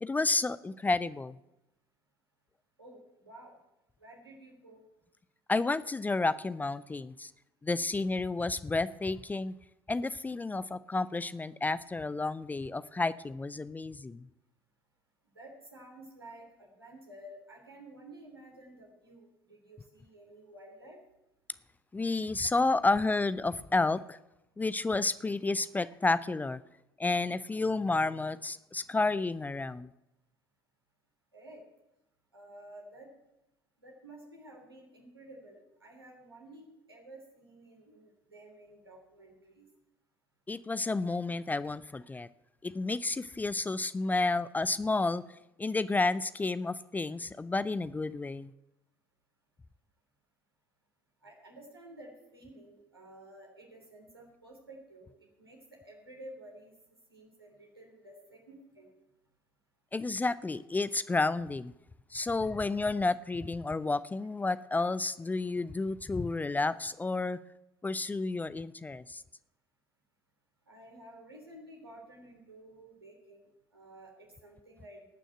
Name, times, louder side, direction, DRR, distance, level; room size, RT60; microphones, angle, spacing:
voice 1, 0.0-1.4 5.5-7.3 7.6-9.5 9.9-14.2 21.9-24.2 24.6-26.6 27.0-29.9 40.5-42.3 42.6-45.2 45.6-48.5 59.9-61.7 62.1-67.4 67.8-69.2, left 3 dB, 15° left, 16 dB, 0.5 m, -31 dB
voice 2, 2.8-3.6 4.0-4.8 15.4-21.0 31.3-31.7 32.3-33.1 33.8-39.6 51.2-56.7 57.1-58.9 70.7-75.2, right 1 dB, 85° right, -1 dB, 3.5 m, -52 dB
18.5 x 6.3 x 7.9 m, 0.92 s
figure-of-eight pair, 60°, 12 cm